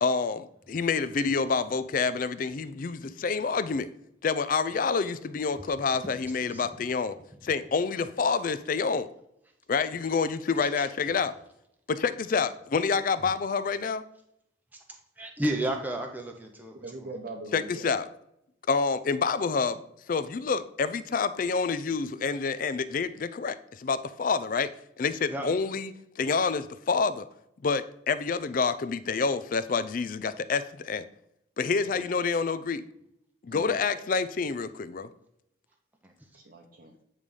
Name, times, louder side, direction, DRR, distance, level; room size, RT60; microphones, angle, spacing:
voice 1, 0.0-3.9 4.2-7.2 7.4-9.1 9.7-11.4 11.9-14.0 17.5-18.1 18.7-19.8 20.1-24.7 25.0-27.3 27.6-31.1 31.6-32.8 33.4-35.1, left 5 dB, 45° left, 13 dB, 0.4 m, -28 dB
voice 2, 15.2-17.1 25.3-25.5 36.0-36.1, right 1 dB, 10° right, 2 dB, 0.6 m, -32 dB
voice 3, 16.7-17.9 31.9-32.0 33.5-33.7 36.3-36.9, right 2 dB, 50° right, 0 dB, 0.8 m, -42 dB
8.8 x 3.3 x 5.3 m, 0.77 s
head